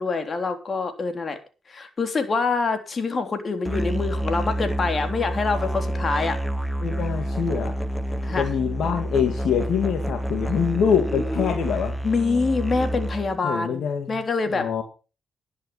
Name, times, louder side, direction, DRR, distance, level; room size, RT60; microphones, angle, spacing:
voice 1, 0.0-1.4 1.7-6.4 8.2-8.5 12.0-14.7, left 4 dB, 45° left, 7 dB, 3.4 m, -25 dB
Musical instrument, 3.7-13.4, right 1 dB, ahead, 1.2 m, -28 dB
voice 2, 6.8-7.7 8.4-12.0 13.4-14.2 14.5-14.8, left 7 dB, 75° left, 6 dB, 2.3 m, -24 dB
11.5 x 11.0 x 5.7 m, 0.33 s
supercardioid pair, 55°, 0 cm